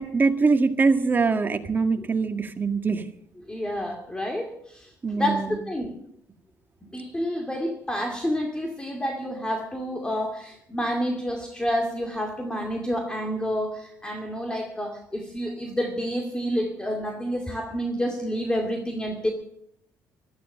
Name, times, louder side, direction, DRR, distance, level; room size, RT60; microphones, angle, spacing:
voice 1, 0.0-3.1 5.0-5.6, right 4 dB, 30° right, 7 dB, 1.8 m, -23 dB
voice 2, 3.5-5.9 6.9-19.3, equal, 10° left, 3 dB, 2.4 m, -29 dB
15.0 x 13.0 x 6.6 m, 0.72 s
cardioid pair, 95°, 7 cm